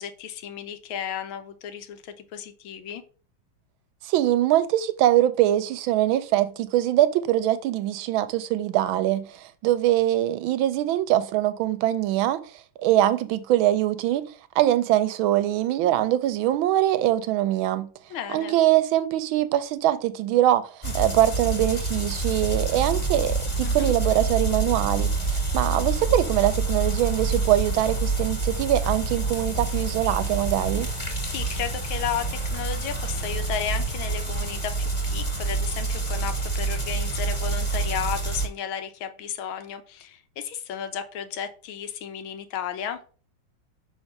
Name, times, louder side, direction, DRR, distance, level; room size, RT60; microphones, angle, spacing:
voice 1, 0.0-3.0 18.1-18.6 23.6-23.9 31.3-43.0, left 8 dB, 90° left, 1.7 m, -33 dB
voice 2, 4.0-12.4 12.8-14.3 14.6-17.9 18.3-30.9, right 13 dB, 85° right, 1.4 m, -23 dB
sound 1, 20.8-38.5, right 3 dB, 20° left, 2.0 m, -27 dB
6.1 x 3.5 x 5.3 m
omnidirectional pair, 2.2 m